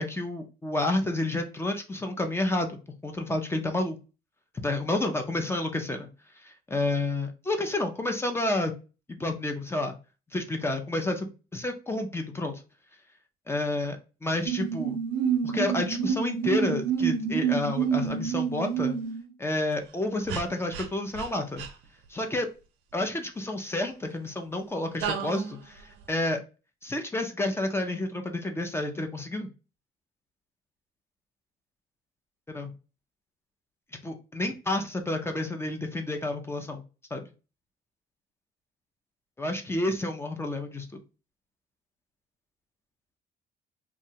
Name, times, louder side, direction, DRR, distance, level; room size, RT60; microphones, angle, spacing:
voice 1, 0.0-4.0 4.6-6.1 6.4-8.7 9.2-9.9 10.3-12.6 13.5-15.0 15.4-19.0 19.4-21.7 22.1-22.5 22.9-26.4 26.8-29.5 32.5-32.7 34.0-36.8 37.1-37.2 39.4-40.9, left 2 dB, 15° left, 4 dB, 0.5 m, -30 dB
sound 1, 14.5-19.3 20.3-20.4 20.7-20.9 21.2-21.3 21.6-21.7 25.0-25.6, right 7 dB, 90° right, 0.6 m, -28 dB
2.9 x 2.2 x 2.7 m, 0.32 s
cardioid pair, 110°, 17 cm